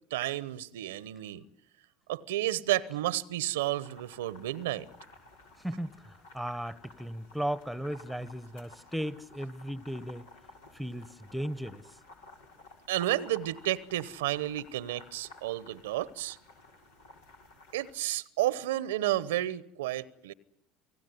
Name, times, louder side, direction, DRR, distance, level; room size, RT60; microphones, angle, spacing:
voice 1, 0.1-1.4 2.1-4.9 12.9-16.4 17.7-20.3, right 14 dB, 80° right, 1.0 m, -31 dB
sound 1, 3.7-17.9, left 2 dB, 85° left, 6.4 m, -54 dB
voice 2, 5.6-10.3 10.7-11.8, equal, ahead, 1.3 m, -36 dB
29.0 x 18.5 x 9.5 m
hypercardioid pair, 80°, 0 cm